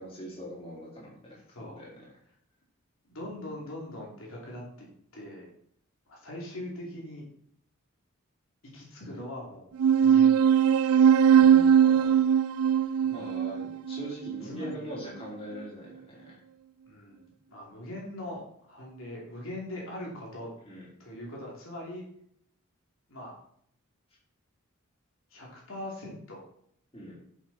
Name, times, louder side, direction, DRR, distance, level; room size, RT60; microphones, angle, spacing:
voice 1, 0.0-1.4 1.8-1.9 11.4-12.2 13.1-16.4 20.7-20.9 26.9-27.2, equal, 25° left, -5 dB, 4.2 m, -42 dB
voice 2, 1.5-1.8 3.0-5.5 6.1-7.2 8.6-9.7 10.0-10.3 13.0-13.5 14.4-14.9 16.9-20.5 21.0-22.0 23.1-23.3 25.3-26.4, left 1 dB, 70° left, -3 dB, 3.0 m, -41 dB
sound 1, 9.8-14.7, right 8 dB, 80° right, 0.3 m, -21 dB
11.0 x 7.4 x 4.2 m, 0.67 s
head